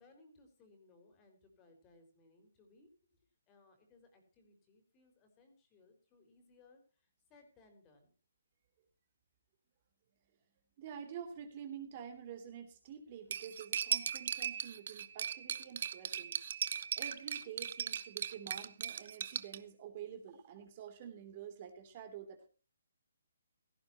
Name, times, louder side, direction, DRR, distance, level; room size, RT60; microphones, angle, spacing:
voice 1, 0.0-3.2 3.5-8.1, left 3 dB, 20° left, 5 dB, 4.5 m, -65 dB
voice 2, 10.8-16.5 17.0-22.5, right 8 dB, 35° right, 6 dB, 3.2 m, -48 dB
Cutlery silverware, 13.3-19.6, right 8 dB, 50° right, 1.0 m, -38 dB
17.0 x 14.5 x 3.0 m, 0.35 s
hypercardioid pair, 160°, 0 cm